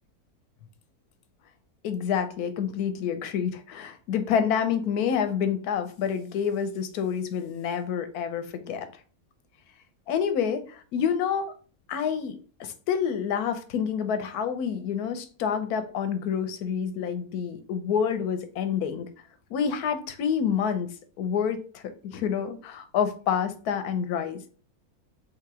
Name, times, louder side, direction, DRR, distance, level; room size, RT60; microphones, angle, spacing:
voice 1, 1.8-8.9 10.1-11.5 11.9-19.1 19.5-20.9 21.2-24.5, left 7 dB, 85° left, 9 dB, 1.2 m, -28 dB
3.4 x 2.9 x 4.7 m, 0.39 s
omnidirectional pair, 1.6 m